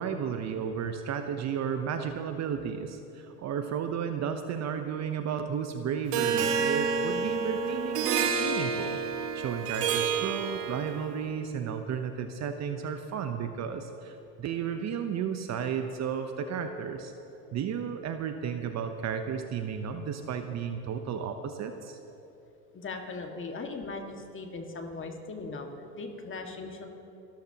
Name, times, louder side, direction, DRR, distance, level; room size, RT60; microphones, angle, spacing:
voice 1, 0.0-9.0 9.3-17.1 17.5-22.0, right 7 dB, 35° right, 7 dB, 0.9 m, -33 dB
Harp, 6.1-11.1, right 6 dB, 80° right, 1.6 m, -29 dB
voice 2, 22.7-25.7 25.9-26.9, left 3 dB, 25° left, 3 dB, 1.9 m, -39 dB
29.0 x 13.5 x 2.9 m, 3.0 s
hypercardioid pair, 95°, 47 cm